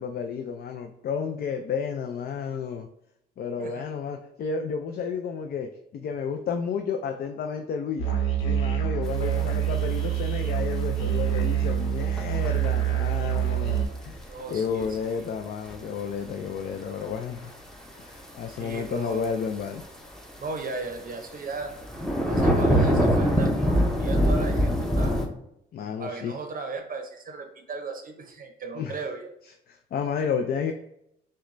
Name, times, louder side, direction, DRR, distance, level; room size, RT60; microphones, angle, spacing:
voice 1, 0.0-2.9 3.4-8.1 8.4-17.5 18.0-19.8 25.7-26.3 28.7-29.0 29.4-30.7, left 6 dB, 50° left, 5 dB, 0.4 m, -31 dB
Musical instrument, 8.0-13.9, right 10 dB, 80° left, 1.0 m, -26 dB
sound 1, 9.1-9.2 9.8-10.3 11.0-11.8 12.1-12.9 13.4-13.6 14.1-14.8 15.7-15.8 17.5-17.6 17.9-18.1 18.7-18.8 19.2-19.8 20.4-20.6 21.6-25.3, equal, 5° left, 0.6 m, -24 dB
voice 2, 14.3-15.0 18.6-19.2 20.4-21.7 22.2-25.2 26.0-29.3, right 4 dB, 45° right, 4 dB, 0.6 m, -36 dB
6.2 x 2.2 x 2.5 m, 0.77 s
cardioid pair, 90°, 20 cm